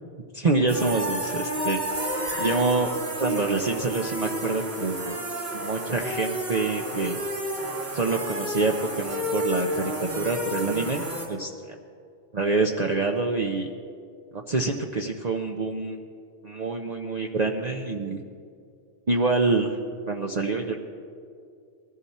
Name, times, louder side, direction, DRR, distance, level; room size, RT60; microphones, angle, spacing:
voice 1, 0.3-1.8 2.4-2.9 3.2-5.2 5.5-7.2 7.9-11.7 12.3-13.7 14.3-16.0 16.4-18.2 19.1-19.8 20.1-20.8, right 3 dB, 40° right, 2 dB, 0.8 m, -26 dB
sound 1, 0.7-11.3, equal, 60° right, 2.4 m, -31 dB
21.0 x 14.0 x 4.3 m, 2.3 s
omnidirectional pair, 1.2 m